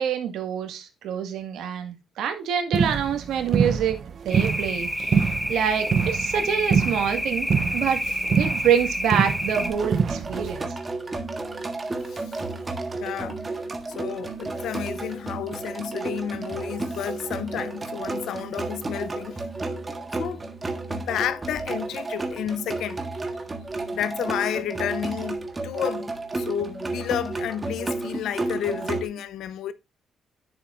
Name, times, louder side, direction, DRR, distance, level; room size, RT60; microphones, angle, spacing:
voice 1, 0.0-4.0 4.2-7.5 7.7-8.0 8.4-10.7, right 8 dB, 80° right, 1.7 m, -26 dB
sound 1, 2.7-10.6, right 6 dB, 50° right, 0.7 m, -26 dB
sound 2, 4.3-9.7, equal, ahead, 1.4 m, -28 dB
sound 3, 9.5-29.0, right 2 dB, 25° right, 1.5 m, -32 dB
voice 2, 12.1-12.4 13.0-13.4 13.9-19.4 19.9-20.4 20.9-23.0 23.9-29.7, left 10 dB, 80° left, 0.7 m, -31 dB
9.5 x 7.0 x 2.5 m
cardioid pair, 90°, 0 cm